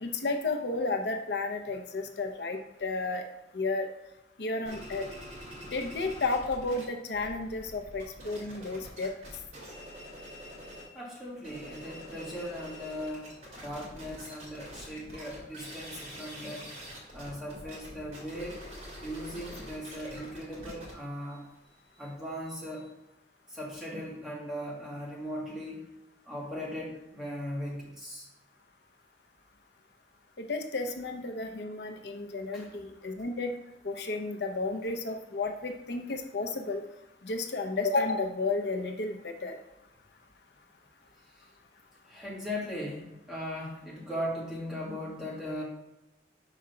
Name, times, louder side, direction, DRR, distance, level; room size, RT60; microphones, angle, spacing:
voice 1, 0.0-3.2 3.5-3.9 4.4-5.1 5.7-9.1 30.4-33.5 33.8-36.8 37.2-39.6, left 3 dB, 75° left, 5 dB, 0.7 m, -32 dB
sound 1, 4.6-6.8 7.1-10.9 11.3-22.9, equal, 35° right, 2.6 m, -46 dB
voice 2, 10.9-13.3 13.6-16.7 17.1-18.7 19.0-21.4 22.0-22.9 23.5-25.8 26.3-28.3 32.5-32.7 42.1-45.6, equal, 5° right, -5 dB, 1.8 m, -38 dB
5.4 x 4.9 x 5.7 m, 0.95 s
head